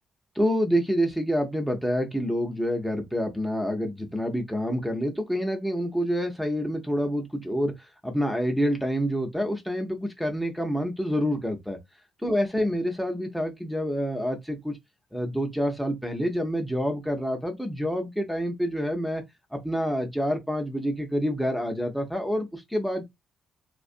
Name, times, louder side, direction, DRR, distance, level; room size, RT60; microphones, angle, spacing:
voice 1, 0.4-11.8 12.2-14.7 15.1-19.2 19.5-23.0, equal, ahead, 0.7 m, -27 dB
2.5 x 2.4 x 2.5 m
cardioid pair, 90°, 0 cm